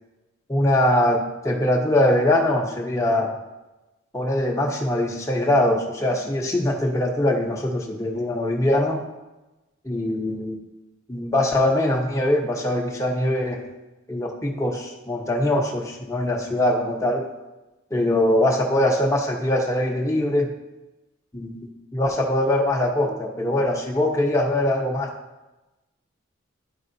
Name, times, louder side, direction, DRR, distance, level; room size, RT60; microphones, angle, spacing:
voice 1, 0.5-3.3 4.1-9.0 9.8-10.6 11.1-13.6 14.1-17.3 17.9-20.5 21.3-25.1, left 1 dB, 15° left, -1 dB, 0.8 m, -22 dB
11.5 x 4.8 x 2.7 m, 1.1 s
head